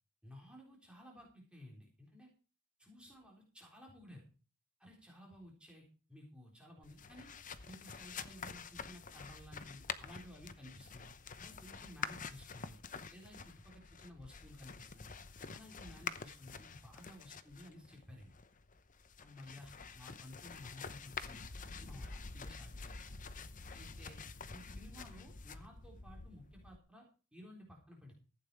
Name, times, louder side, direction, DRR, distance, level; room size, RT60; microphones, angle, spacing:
voice 1, 0.2-2.3 2.8-4.3 4.8-7.3 7.6-11.1 11.4-12.8 13.1-15.1 15.5-18.3 19.2-23.2 23.7-24.2 24.5-27.0 27.3-28.2, left 1 dB, 5° right, -1 dB, 3.9 m, -55 dB
sound 1, 6.8-26.8, left 5 dB, 35° left, 0.8 m, -48 dB
15.0 x 8.9 x 4.8 m, 0.36 s
head